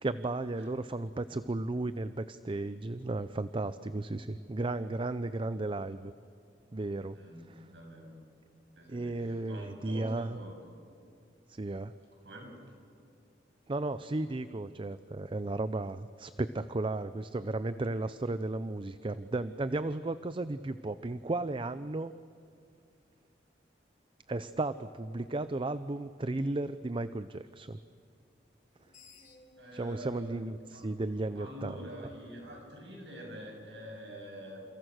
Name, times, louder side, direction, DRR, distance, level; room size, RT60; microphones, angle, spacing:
voice 1, 0.0-6.1 6.7-7.2 7.5-7.7 8.9-10.4 11.5-11.9 13.7-22.2 24.3-27.8 29.7-31.8, right 2 dB, 30° right, 13 dB, 0.5 m, -34 dB
voice 2, 7.1-8.1 8.8-10.6 12.2-12.6 29.6-30.8 31.3-34.6, equal, 85° right, 1 dB, 7.6 m, -46 dB
Screech, 28.6-31.8, left 3 dB, 45° left, 3.4 m, -59 dB
29.5 x 28.5 x 6.4 m, 2.4 s
head